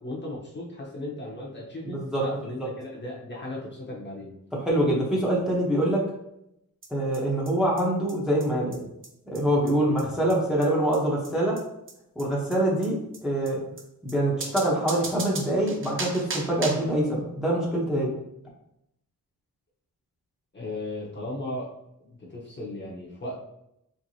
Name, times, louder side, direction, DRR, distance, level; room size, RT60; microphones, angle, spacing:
voice 1, 0.0-4.3 20.5-21.7 22.0-23.4, left 1 dB, 30° left, -4 dB, 0.9 m, -36 dB
voice 2, 1.9-2.2 4.6-6.0 6.9-8.8 9.3-11.6 12.2-13.0 13.2-13.6 14.0-18.1, right 1 dB, ahead, -5 dB, 0.9 m, -24 dB
sound 1, 6.8-6.9 7.1-7.2 7.5-7.6 7.8-7.9 8.1-8.2 8.4-8.5 8.7-8.8 9.0-9.1 9.3-9.4 9.7-9.8 10.0-10.1 10.3-10.4 10.6-10.7 10.9-11.0 11.2-11.3 11.6-11.7 11.9-12.0 12.2-12.3 12.5-12.6 12.8-12.9 13.1-13.2 13.5-13.6 13.8-13.9 14.1-14.2 14.4-16.9, right 3 dB, 35° right, 0.6 m, -36 dB
4.7 x 3.3 x 2.7 m, 0.81 s
wide cardioid pair, 175°, 35 cm